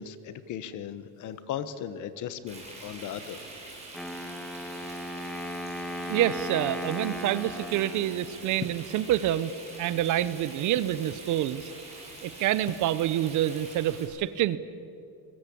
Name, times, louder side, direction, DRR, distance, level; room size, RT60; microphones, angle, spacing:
voice 1, 0.0-3.4, left 9 dB, 45° left, 13 dB, 1.3 m, -38 dB
Frying (food), 2.5-14.1, right 2 dB, 15° right, 6.4 m, -45 dB
Wind instrument woodwind instrument, 3.9-8.9, left 1 dB, ahead, 1.4 m, -37 dB
voice 2, 6.0-9.5 9.8-11.7 12.2-14.6, right 12 dB, 50° right, 16 dB, 0.8 m, -27 dB
sound 1, 8.6-8.9 9.8-11.0 12.7-13.0, left 9 dB, 25° left, 0.6 m, -41 dB
22.0 x 21.5 x 8.6 m, 2.5 s
cardioid pair, 165°, 40 cm